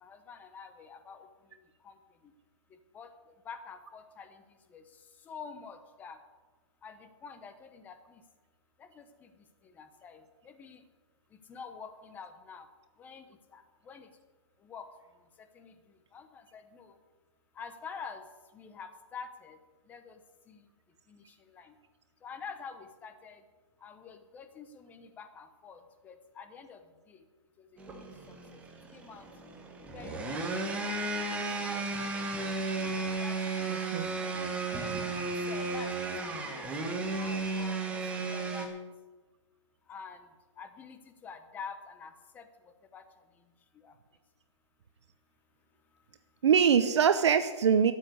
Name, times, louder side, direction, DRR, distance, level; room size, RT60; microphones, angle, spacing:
voice 1, 0.0-1.3 1.8-1.9 2.9-3.1 3.5-4.4 4.7-4.8 5.3-6.2 6.8-8.2 9.0-9.3 9.8-10.8 11.5-12.7 13.0-13.2 13.5-14.1 14.6-14.8 15.5-15.7 16.1-16.9 17.6-18.2 18.5-19.6 19.9-20.2 20.5-20.6 21.1-21.2 21.5-21.7 22.2-23.4 23.8-26.8 27.1-27.2 28.0-28.1 28.9-29.3 29.9-31.0 31.7-31.8 33.0-33.6 34.2-34.3 34.7-34.9 35.5-35.9 36.2-37.8 38.3-38.8 39.9-40.2 40.6-42.4 42.9-43.0 43.8-43.9, left 6 dB, 10° left, 8 dB, 0.8 m, -47 dB
sound 1, 27.8-38.7, right 3 dB, 10° right, 1.3 m, -34 dB
voice 2, 33.7-34.1 46.4-47.9, right 7 dB, 65° right, 10 dB, 0.8 m, -23 dB
12.5 x 7.4 x 9.4 m, 1.3 s
hypercardioid pair, 160°, 16 cm